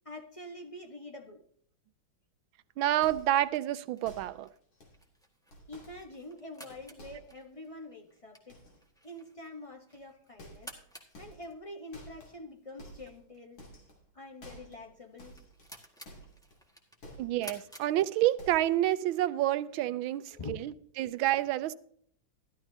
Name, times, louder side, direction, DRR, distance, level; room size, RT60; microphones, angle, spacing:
voice 1, 0.0-1.4 5.7-8.6 9.0-10.7 11.2-13.6 14.1-15.4 20.3-20.6, left 2 dB, 25° left, 0.8 m, -46 dB
voice 2, 2.8-4.5 17.2-21.7, right 14 dB, 90° right, 1.4 m, -29 dB
sound 1, 3.0-3.5 4.0-4.5 4.7-5.0 5.5-7.4 8.5-8.8 9.9-10.1 10.4-10.9 11.1-11.6 11.9-12.4 12.8-13.3 13.6-14.1 14.4-14.9 15.2-16.6 17.0-17.5 17.8-17.9 18.3-18.9 19.1-19.4 19.7-19.8, right 1 dB, 85° left, 3.5 m, -52 dB
sound 2, 3.0-18.7, right 1 dB, ahead, 1.5 m, -55 dB
14.0 x 12.0 x 2.8 m
omnidirectional pair, 2.1 m